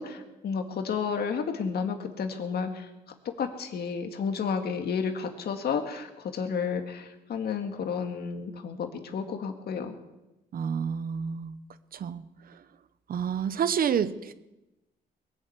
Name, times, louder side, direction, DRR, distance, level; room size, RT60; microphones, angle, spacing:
voice 1, 0.0-2.9 3.4-9.9, left 6 dB, 70° left, 5 dB, 1.9 m, -31 dB
voice 2, 10.5-11.6 11.9-12.2 12.5-12.6 13.1-14.3, right 7 dB, 60° right, 14 dB, 0.9 m, -29 dB
21.5 x 7.2 x 8.2 m, 0.99 s
cardioid pair, 90°, 17 cm